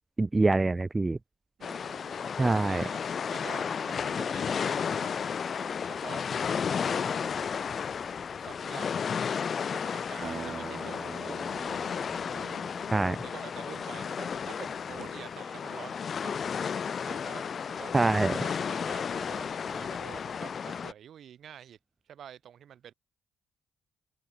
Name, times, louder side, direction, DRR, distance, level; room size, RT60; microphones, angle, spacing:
voice 1, 0.2-1.2 2.4-2.8 12.9-13.2 17.9-18.4, right 3 dB, 20° right, 0.4 m, -25 dB
sound 1, 1.6-20.9, left 6 dB, 50° left, 0.9 m, -33 dB
voice 2, 1.6-5.4 5.8-6.5 6.9-7.5 8.4-8.9 9.7-11.4 12.3-12.8 13.1-16.4 17.0-21.8 22.1-22.9, right 9 dB, 65° right, 3.9 m, -48 dB
sound 2, 10.2-14.0, right 5 dB, 40° right, 2.5 m, -44 dB
cardioid pair, 90°, 0 cm